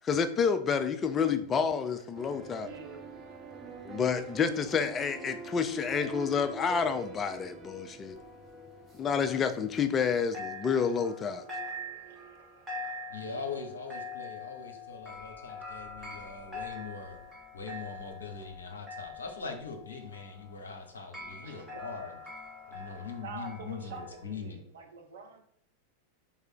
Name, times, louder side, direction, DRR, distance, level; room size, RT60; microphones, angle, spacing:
voice 1, 0.0-2.7 3.8-8.2 9.0-11.5, left 6 dB, 25° left, 9 dB, 0.3 m, -29 dB
sound 1, 2.1-10.2, right 3 dB, 25° right, 0.6 m, -45 dB
voice 2, 2.3-4.0 10.6-13.3 18.2-18.3 18.6-18.8 20.2-21.0 21.4-25.4, right 4 dB, 60° right, 2 dB, 0.9 m, -50 dB
sound 2, 8.2-10.1 10.3-24.2, left 2 dB, 10° right, 1.2 m, -44 dB
voice 3, 13.1-17.2 17.5-22.2 22.7-24.6, left 4 dB, 70° left, 4 dB, 0.8 m, -41 dB
3.5 x 3.3 x 4.5 m, 0.64 s
figure-of-eight pair, 90°, 0 cm